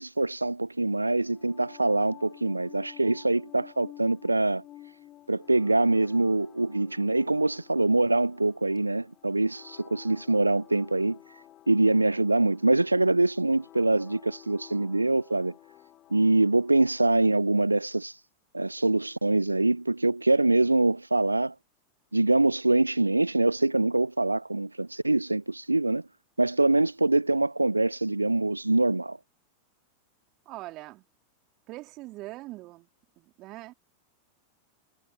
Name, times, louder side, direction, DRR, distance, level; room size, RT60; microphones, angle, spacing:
voice 1, 0.0-4.6 5.3-15.5 16.1-18.2 18.5-21.5 22.1-26.0 26.4-29.2, right 2 dB, 85° right, 0.5 m, -24 dB
sound 1, 1.3-17.2, left 13 dB, 35° left, 3.8 m, -52 dB
voice 2, 30.5-31.0 31.7-32.9 33.2-33.7, right 19 dB, 40° right, 3.6 m, -42 dB
figure-of-eight pair, 90°, 0 cm